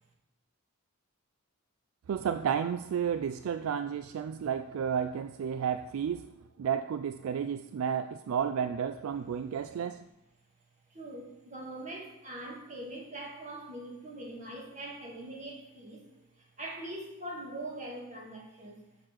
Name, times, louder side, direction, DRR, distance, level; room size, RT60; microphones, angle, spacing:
voice 1, 2.1-6.3 6.6-10.0, right 7 dB, 65° right, 0.3 m, -32 dB
voice 2, 10.9-18.8, right 1 dB, 30° right, 1.7 m, -42 dB
6.4 x 4.9 x 5.9 m
head